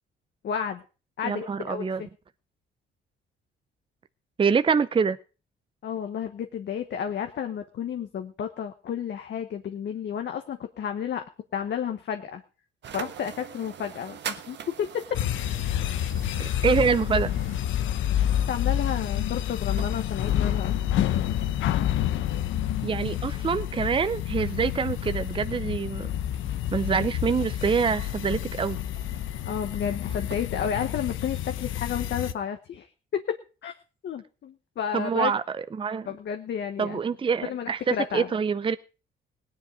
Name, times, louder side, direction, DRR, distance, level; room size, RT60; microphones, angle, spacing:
voice 1, 0.4-0.8 1.2-2.1 5.8-11.2 11.5-12.4 12.9-15.0 18.5-20.7 29.5-33.4 33.6-33.7 34.0-35.3 36.1-37.0 37.5-38.3, left 8 dB, 60° left, 6 dB, 1.2 m, -31 dB
voice 2, 1.2-2.0 4.4-5.2 16.4-17.3 22.8-26.1 26.7-28.8 34.9-36.1 36.8-38.8, right 6 dB, 25° right, 12 dB, 0.6 m, -25 dB
sound 1, 12.8-22.1 22.7-30.5, right 8 dB, 65° right, 1.3 m, -45 dB
sound 2, 15.1-32.3, left 11 dB, 80° left, 0.8 m, -28 dB
17.5 x 10.0 x 4.9 m, 0.36 s
cardioid pair, 90°, 20 cm